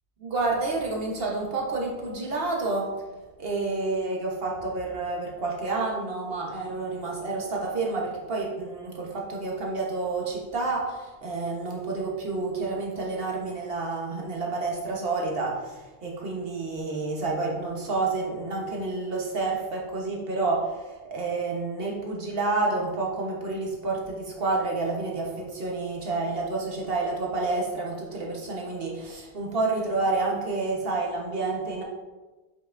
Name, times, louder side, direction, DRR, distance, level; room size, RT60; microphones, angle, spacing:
voice 1, 0.2-2.9 3.4-31.8, right 3 dB, 60° right, -2 dB, 1.4 m, -29 dB
7.2 x 5.6 x 2.6 m, 1.2 s
omnidirectional pair, 1.1 m